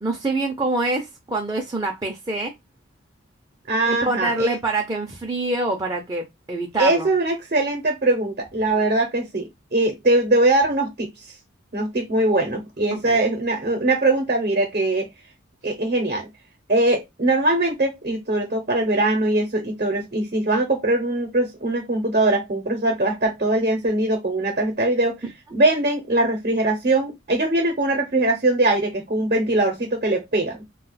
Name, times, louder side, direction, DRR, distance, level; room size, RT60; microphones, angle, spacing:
voice 1, 0.0-2.5 3.9-7.1 12.9-13.2, right 2 dB, 20° right, 0.6 m, -25 dB
voice 2, 3.7-4.5 6.8-11.1 11.7-15.1 15.6-16.3 16.7-25.2 25.5-30.6, right 2 dB, 45° right, 0.9 m, -21 dB
2.4 x 2.3 x 4.0 m
head